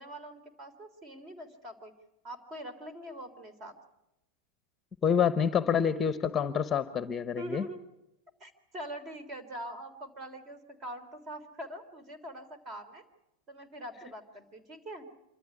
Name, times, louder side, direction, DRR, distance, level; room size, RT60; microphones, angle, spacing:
voice 1, 0.0-1.9 2.2-3.7 7.4-7.8 8.4-13.0 13.5-15.0, right 1 dB, 30° right, 11 dB, 3.5 m, -43 dB
voice 2, 5.0-7.6, left 7 dB, 20° left, 13 dB, 1.0 m, -27 dB
26.5 x 13.5 x 9.8 m, 0.92 s
supercardioid pair, 135°, 0 cm